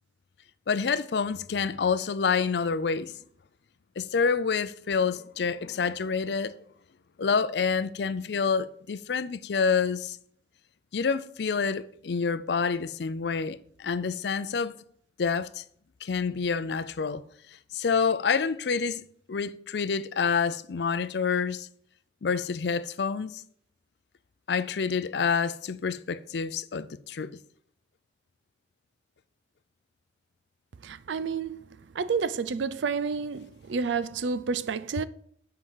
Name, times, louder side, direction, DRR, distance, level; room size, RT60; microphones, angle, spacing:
voice 1, 0.7-3.1 4.0-6.5 7.2-10.2 10.9-14.7 15.2-15.6 16.0-17.2 17.7-19.0 19.3-21.7 22.2-23.3 24.5-27.3, left 5 dB, 70° left, 0.5 m, -27 dB
voice 2, 30.8-31.6 32.0-35.0, right 5 dB, 85° right, 0.5 m, -30 dB
7.9 x 4.8 x 5.6 m
head